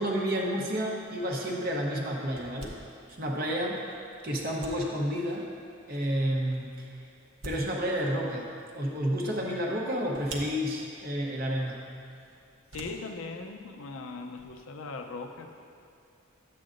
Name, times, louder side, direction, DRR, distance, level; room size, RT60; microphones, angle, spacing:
voice 1, 0.0-2.7 3.2-3.8 4.2-5.5 5.9-7.0 7.4-8.5 8.7-11.8, equal, 45° right, -2 dB, 0.8 m, -30 dB
sound 1, 1.0-14.6, right 1 dB, 70° right, 1.0 m, -50 dB
voice 2, 12.7-15.5, left 3 dB, 75° left, 5 dB, 0.6 m, -39 dB
11.0 x 7.6 x 2.5 m, 2.5 s
head